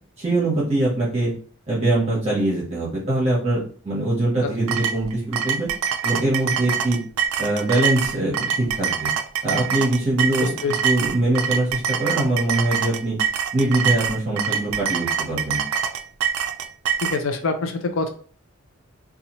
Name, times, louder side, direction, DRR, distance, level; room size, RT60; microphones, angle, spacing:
voice 1, 0.2-1.3 1.7-5.7 6.0-7.0 7.4-9.1 9.4-10.5 10.8-13.2 13.5-15.6, right 1 dB, 30° right, -6 dB, 0.8 m, -22 dB
sound 1, 4.7-17.2, right 7 dB, 75° right, 0.3 m, -25 dB
voice 2, 10.4-10.8 17.0-18.1, left 3 dB, 65° left, 5 dB, 0.4 m, -25 dB
2.7 x 2.3 x 2.9 m, 0.42 s
head